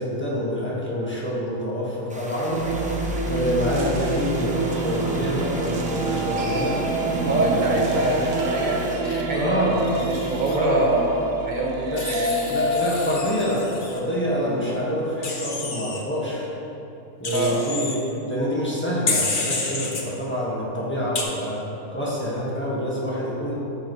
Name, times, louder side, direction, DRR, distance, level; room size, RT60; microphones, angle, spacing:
voice 1, 0.0-2.7 3.2-6.8 7.4-8.1 9.3-9.8 10.5-10.9 11.9-12.0 12.5-16.5 17.2-21.6 21.9-23.6, equal, 10° left, -7 dB, 1.5 m, -26 dB
sound 1, 2.1-9.0, equal, 10° right, 0.5 m, -39 dB
sound 2, 2.5-14.6, right 2 dB, 80° right, 1.1 m, -28 dB
voice 2, 7.3-9.7 10.0-12.5 14.4-14.6 17.3-17.6, right 2 dB, 35° right, -2 dB, 1.2 m, -25 dB
Wild animals, 9.0-10.6 12.0-14.0 15.2-16.0 17.2-18.0 19.1-20.0 21.2-21.3, left 3 dB, 45° left, 1.0 m, -30 dB
8.5 x 8.4 x 3.1 m, 3.0 s
omnidirectional pair, 1.4 m